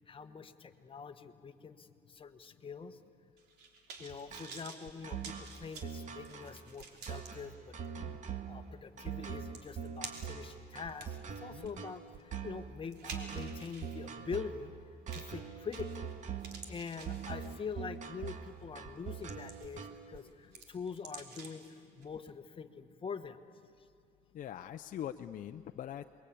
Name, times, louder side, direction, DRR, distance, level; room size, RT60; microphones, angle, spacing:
voice 1, 0.1-3.0 4.0-7.7 8.5-14.7 15.1-16.1 16.7-21.6 21.9-23.4, left 5 dB, 30° left, 8 dB, 1.3 m, -44 dB
sound 1, 3.4-7.3 7.8-7.9 9.1-9.2 9.5-10.4 10.9-14.0 15.1-15.4 15.7-16.1 16.4-17.7 18.3-18.5 19.0-19.8 20.2-21.7 22.0-22.1, right 5 dB, 80° right, 3.3 m, -50 dB
sound 2, 4.3-20.2, right 7 dB, 45° right, 1.7 m, -43 dB
voice 2, 24.3-26.2, left 10 dB, 50° left, 6 dB, 0.7 m, -43 dB
28.0 x 22.0 x 8.6 m, 2.4 s
cardioid pair, 110°, 17 cm